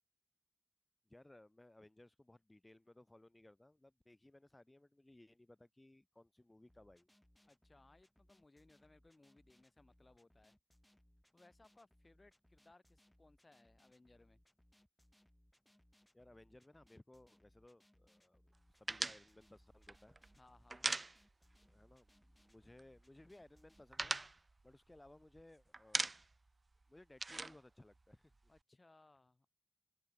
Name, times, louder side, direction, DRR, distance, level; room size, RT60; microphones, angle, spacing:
voice 1, 1.1-7.1 16.1-20.2 21.6-24.2 24.6-26.1 26.9-28.3, left 1 dB, 35° left, 5.2 m, -62 dB
sound 1, 6.7-23.8, left 1 dB, 15° left, 5.3 m, -71 dB
voice 2, 7.5-10.5 11.3-14.4 20.3-20.9 28.5-29.5, left 2 dB, 55° left, 5.1 m, -66 dB
sound 2, 18.9-21.7 21.9-22.1 22.4-23.1 23.4-25.4 25.7-26.5 26.7-28.6, right 2 dB, 60° right, 0.4 m, -41 dB
wide cardioid pair, 40°, 0 cm